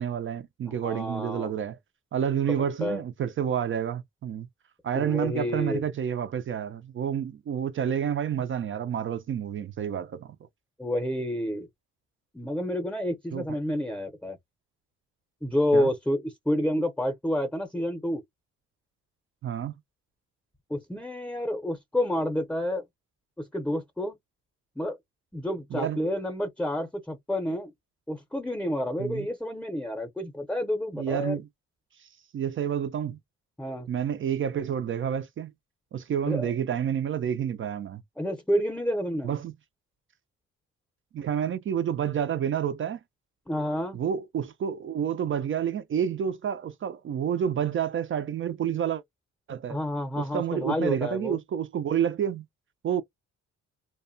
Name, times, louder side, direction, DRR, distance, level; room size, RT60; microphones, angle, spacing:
voice 1, 0.0-1.8 2.1-4.5 4.8-10.4 13.3-13.6 15.7-15.9 19.4-19.7 25.7-26.0 29.0-29.3 30.9-31.5 32.0-33.2 33.9-35.5 35.9-38.0 39.2-39.5 41.1-43.0 43.9-49.0 49.5-49.8 50.2-52.4 52.8-53.0, right 8 dB, 45° right, 0.4 m, -29 dB
voice 2, 0.8-1.5 2.8-3.0 4.9-5.8 10.8-11.7 12.3-14.4 15.4-18.2 20.7-22.8 23.4-24.2 24.8-25.0 25.3-27.7 28.1-31.4 33.6-33.9 36.3-36.5 38.2-39.3 43.5-44.0 49.7-51.4, left 1 dB, 5° left, 0.7 m, -29 dB
2.7 x 2.2 x 2.6 m
cardioid pair, 90°, 30 cm